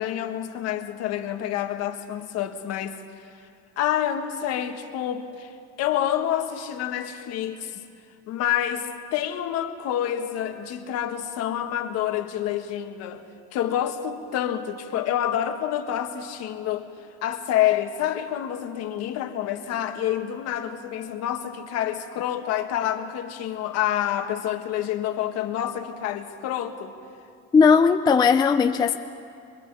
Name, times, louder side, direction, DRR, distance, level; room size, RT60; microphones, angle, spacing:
voice 1, 0.0-3.3 3.8-7.8 8.3-13.2 13.5-16.9 17.2-26.9, left 11 dB, 55° left, 5 dB, 1.7 m, -28 dB
voice 2, 27.5-29.0, left 5 dB, 15° left, 8 dB, 0.4 m, -17 dB
24.0 x 23.0 x 4.8 m, 2.4 s
cardioid pair, 150°, 30 cm